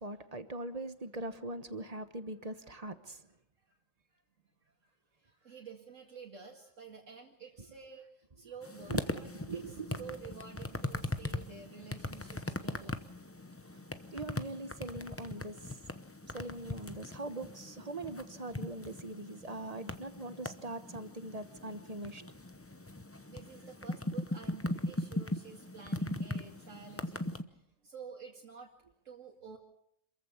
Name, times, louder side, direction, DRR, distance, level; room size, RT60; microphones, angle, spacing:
voice 1, 0.0-3.2 8.9-10.0 14.1-15.5 16.3-22.3, right 2 dB, 30° right, 10 dB, 1.2 m, -41 dB
voice 2, 5.4-13.0 23.3-28.7 29.0-29.6, right 6 dB, 70° right, -1 dB, 2.5 m, -50 dB
sound 1, 8.6-27.4, left 1 dB, 15° left, 0.7 m, -40 dB
27.0 x 14.5 x 7.1 m, 0.73 s
omnidirectional pair, 1.4 m